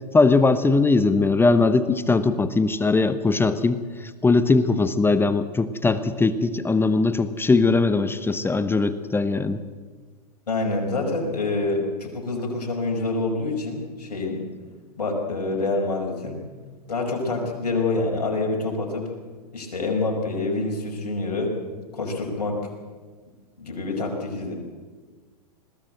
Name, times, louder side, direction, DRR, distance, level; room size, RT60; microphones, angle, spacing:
voice 1, 0.1-3.8 4.2-9.6, left 3 dB, 10° left, 12 dB, 0.9 m, -20 dB
voice 2, 10.5-14.4 15.0-16.4 16.9-19.1 19.5-21.5 21.9-22.6 23.6-24.5, left 3 dB, 80° left, 1 dB, 5.4 m, -26 dB
21.0 x 16.0 x 7.9 m, 1.4 s
hypercardioid pair, 105°, 20 cm